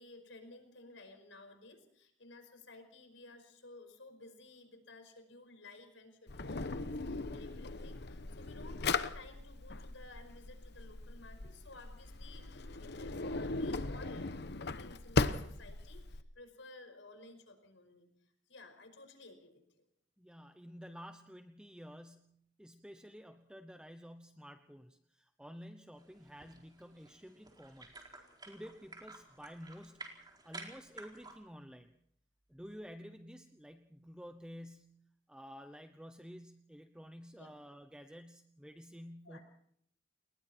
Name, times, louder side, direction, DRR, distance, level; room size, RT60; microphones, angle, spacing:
voice 1, 0.0-18.1 18.5-19.6 37.3-37.5 39.2-39.4, left 2 dB, 85° left, 7 dB, 5.3 m, -55 dB
Drawer open or close, 6.3-16.2, left 3 dB, 65° left, 1.1 m, -38 dB
voice 2, 20.2-27.9 28.5-30.2 30.4-31.9 32.5-39.4, equal, 5° right, 7 dB, 0.9 m, -51 dB
sound 1, 26.0-31.4, right 3 dB, 25° right, 4.5 m, -52 dB
30.0 x 20.5 x 4.5 m, 0.68 s
head